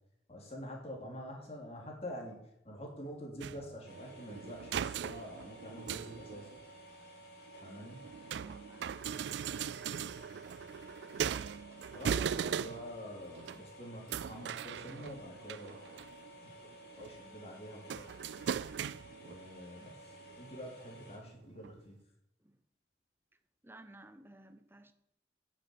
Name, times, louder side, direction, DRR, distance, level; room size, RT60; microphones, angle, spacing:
voice 1, 0.3-6.5 7.6-8.0 11.9-16.1 16.4-18.1 19.2-22.0, equal, 35° left, 3.3 m, -47 dB
sound 1, 3.4-6.7 7.5-13.0 13.4-13.6 14.1-16.3 16.7-17.1 17.9-19.4 20.3-20.4 21.2-21.3 21.6-21.7, right 8 dB, 80° right, 0.3 m, -39 dB
sound 2, 3.9-21.2, right 1 dB, 60° left, 4.7 m, -54 dB
voice 2, 8.3-9.1 22.4-22.6 23.6-24.9, right 1 dB, 15° right, 0.9 m, -56 dB
10.0 x 7.1 x 9.2 m
head